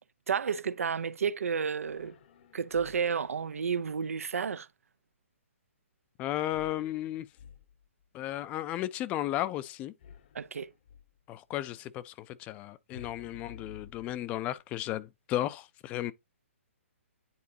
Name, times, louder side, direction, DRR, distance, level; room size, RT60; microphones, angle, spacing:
voice 1, 0.3-2.2 2.5-4.7 10.3-10.7, right 6 dB, 85° right, 0.5 m, -31 dB
sound 1, 1.8-3.3 6.5-8.0 10.0-11.2 12.9-14.6, left 7 dB, 45° left, 0.9 m, -53 dB
voice 2, 6.2-7.3 8.1-9.9 11.3-16.1, left 13 dB, 20° left, 0.4 m, -34 dB
9.6 x 3.9 x 2.7 m
hypercardioid pair, 155°, 7 cm